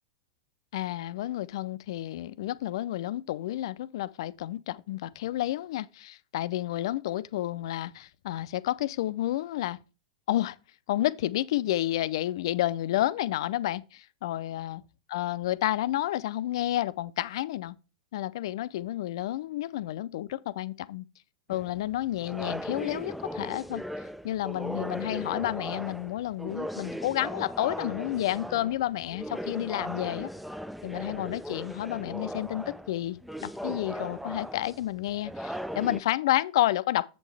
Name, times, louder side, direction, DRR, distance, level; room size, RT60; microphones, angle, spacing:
voice 1, 0.7-9.8 10.3-10.6 10.9-14.8 15.1-17.8 18.1-21.1 21.5-23.8 24.2-30.3 30.8-37.1, left 14 dB, 65° left, 0.4 m, -30 dB
sound 1, 21.5-36.0, equal, ahead, 0.3 m, -38 dB
7.5 x 6.3 x 3.3 m
hypercardioid pair, 110°, 3 cm